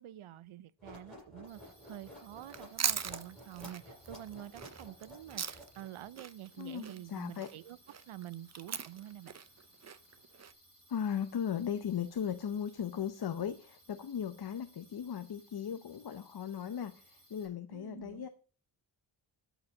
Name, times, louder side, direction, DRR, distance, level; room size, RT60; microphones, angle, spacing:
voice 1, 0.0-7.8 8.1-9.4 17.7-18.3, right 12 dB, 80° right, 0.6 m, -48 dB
sound 1, 0.8-6.1, left 1 dB, ahead, 7.1 m, -53 dB
sound 2, 1.5-17.5, equal, 20° right, 7.0 m, -63 dB
Chewing mastication, 2.4-5.9 6.2-10.5, right 7 dB, 35° right, 0.6 m, -39 dB
voice 2, 6.6-7.5 10.9-18.3, left 8 dB, 50° left, 0.7 m, -37 dB
12.5 x 5.1 x 6.3 m
wide cardioid pair, 135°, 48 cm